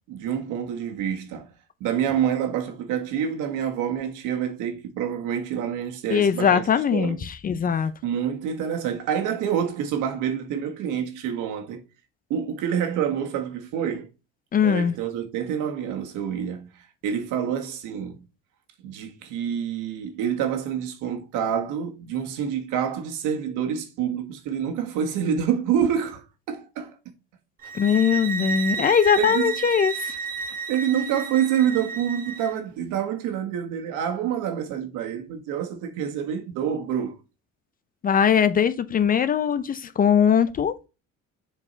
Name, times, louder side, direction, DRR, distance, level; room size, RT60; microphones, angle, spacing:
voice 1, 0.1-1.5 1.8-6.6 6.9-7.2 7.7-11.8 12.3-14.1 14.6-18.2 18.8-27.0 29.2-29.5 30.7-37.1, right 8 dB, 75° right, 1.6 m, -27 dB
voice 2, 6.1-7.9 14.5-14.9 27.7-30.2 38.0-40.7, left 7 dB, 30° left, 0.5 m, -21 dB
sound 1, 27.6-32.5, right 5 dB, 25° right, 1.1 m, -31 dB
7.2 x 4.4 x 4.4 m
cardioid pair, 130°, 31 cm